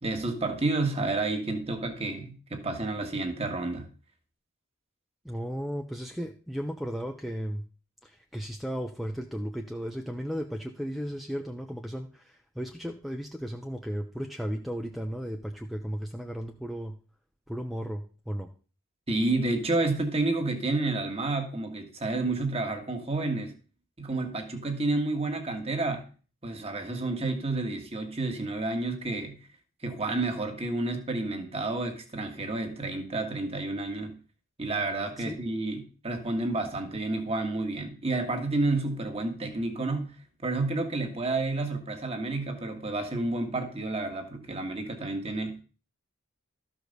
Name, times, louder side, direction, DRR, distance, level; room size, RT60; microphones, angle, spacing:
voice 1, 0.0-3.9 19.1-23.5 24.0-26.0 26.4-29.4 29.8-34.2 34.6-40.2 40.4-45.6, right 2 dB, 25° right, 5 dB, 1.6 m, -30 dB
voice 2, 5.2-7.6 8.0-16.9 17.5-18.5 35.2-35.4, equal, ahead, 3 dB, 0.6 m, -35 dB
13.0 x 5.0 x 6.5 m, 0.38 s
head